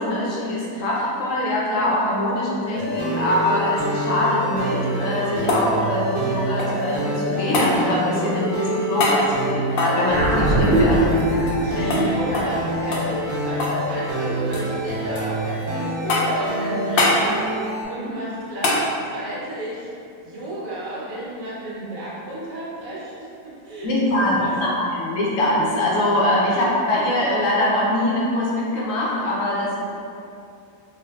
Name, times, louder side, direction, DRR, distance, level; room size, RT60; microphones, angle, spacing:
voice 1, 0.0-11.0 11.7-12.1 23.8-29.8, left 1 dB, 65° left, -5 dB, 0.9 m, -23 dB
sound 1, 2.7-17.8, right 1 dB, 90° right, 0.4 m, -27 dB
sound 2, 4.9-6.9 7.5-7.7 9.0-9.2 9.7-11.6 11.9-12.0 12.3-12.6 12.9-13.8 14.1-14.7 15.1-15.7 16.1-16.5 17.0-17.2 18.6-18.8 21.2-21.3, left 2 dB, 85° left, 0.5 m, -24 dB
sound 3, 10.1-14.7, right 1 dB, 45° right, 1.0 m, -23 dB
voice 2, 11.6-17.5 17.8-19.9 20.2-23.9 24.2-24.6, right 1 dB, 70° right, -7 dB, 1.1 m, -32 dB
3.5 x 2.5 x 2.3 m, 2.6 s
omnidirectional pair, 1.5 m